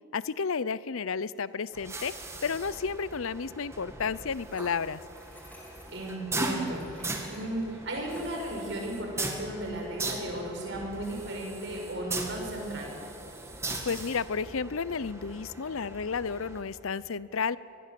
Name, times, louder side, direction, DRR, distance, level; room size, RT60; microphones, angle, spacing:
voice 1, 0.1-2.1 2.4-5.0 13.9-17.6, left 5 dB, 75° left, 18 dB, 0.6 m, -32 dB
sound 1, 1.7-16.6, right 2 dB, 15° right, 2.0 m, -39 dB
sound 2, 4.5-6.1 6.6-8.4, equal, 10° left, 3.7 m, -53 dB
voice 2, 5.9-13.0, right 1 dB, 55° right, 1 dB, 6.0 m, -35 dB
25.0 x 20.5 x 7.7 m, 2.6 s
head